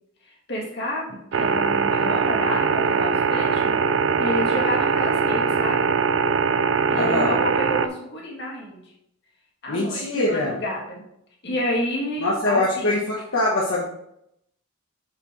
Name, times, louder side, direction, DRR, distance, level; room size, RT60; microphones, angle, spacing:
voice 1, 0.2-3.7 4.2-5.8 6.9-8.8 9.6-11.0 11.4-13.0, left 1 dB, 50° left, -2 dB, 2.1 m, -29 dB
sound 1, 1.3-7.9, right 5 dB, 60° right, 0.4 m, -21 dB
voice 2, 6.9-7.4 9.7-10.6 12.2-13.8, left 2 dB, 70° left, -4 dB, 1.2 m, -23 dB
6.8 x 6.7 x 3.2 m, 0.78 s
head